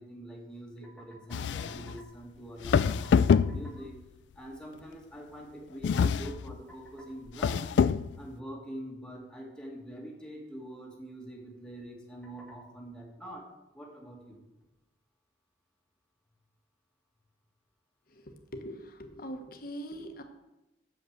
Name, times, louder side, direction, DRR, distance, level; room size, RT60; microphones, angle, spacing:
voice 1, 0.0-3.9 4.4-7.7 8.2-13.5 13.7-14.4, right 1 dB, 5° left, -2 dB, 2.0 m, -44 dB
sound 1, 1.3-2.0 2.6-4.0 5.8-6.6 7.3-8.2, left 6 dB, 75° left, 0.3 m, -26 dB
voice 2, 18.1-20.2, equal, 55° left, 5 dB, 1.2 m, -43 dB
8.1 x 7.3 x 6.5 m, 0.94 s
head